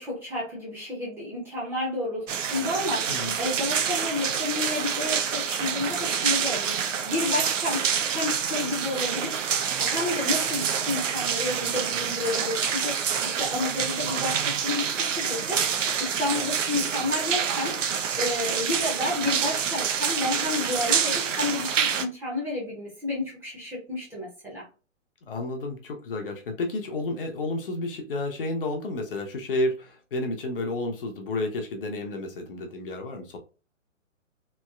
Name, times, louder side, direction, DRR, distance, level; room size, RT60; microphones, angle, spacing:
voice 1, 0.0-9.5 9.8-17.8 18.2-24.7, left 2 dB, 5° right, -7 dB, 0.6 m, -31 dB
sound 1, 2.3-22.1, right 7 dB, 70° right, 0.6 m, -27 dB
voice 2, 25.3-33.4, left 2 dB, 45° left, 3 dB, 0.6 m, -31 dB
3.0 x 2.7 x 2.3 m, 0.35 s
figure-of-eight pair, 125°, 39 cm